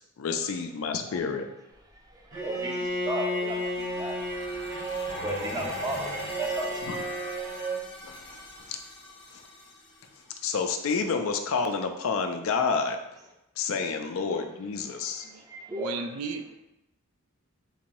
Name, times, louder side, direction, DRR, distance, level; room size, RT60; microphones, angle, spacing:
voice 1, 0.2-1.5 6.9-7.0 8.0-8.4 8.7-8.8 10.4-13.0 13.6-15.2, left 5 dB, 60° left, 6 dB, 0.4 m, -29 dB
voice 2, 2.1-4.2 4.6-4.9 5.2-7.5 14.9-16.1, right 1 dB, 15° right, 0 dB, 0.4 m, -36 dB
Bowed string instrument, 2.3-7.8, equal, 55° right, 0.9 m, -32 dB
sound 1, 3.2-11.0, left 1 dB, 25° left, 0.7 m, -46 dB
voice 3, 15.7-16.5, right 4 dB, 75° right, 7 dB, 0.4 m, -35 dB
3.9 x 2.6 x 2.9 m, 0.88 s
head